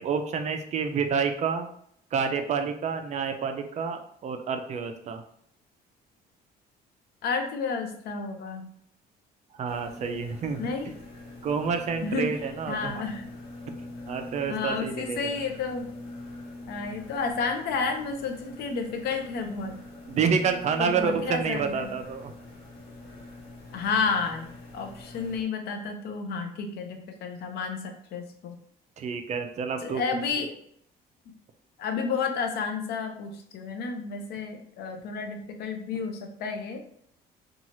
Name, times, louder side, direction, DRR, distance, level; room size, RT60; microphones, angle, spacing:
voice 1, 0.0-1.7 2.1-5.2 9.6-10.6 11.4-12.9 13.7-13.8 14.1-15.3 20.1-22.3 29.0-30.0, right 6 dB, 45° right, 6 dB, 0.4 m, -28 dB
voice 2, 7.2-8.7 10.6-10.9 12.0-12.3 12.7-13.3 14.5-15.9 16.7-19.8 20.8-21.9 23.7-28.5 29.8-30.6 31.8-36.8, left 4 dB, 75° left, 5 dB, 0.5 m, -31 dB
sound 1, 9.6-25.4, left 2 dB, 90° left, 0.9 m, -44 dB
2.8 x 2.3 x 2.9 m, 0.66 s
cardioid pair, 110°, 17 cm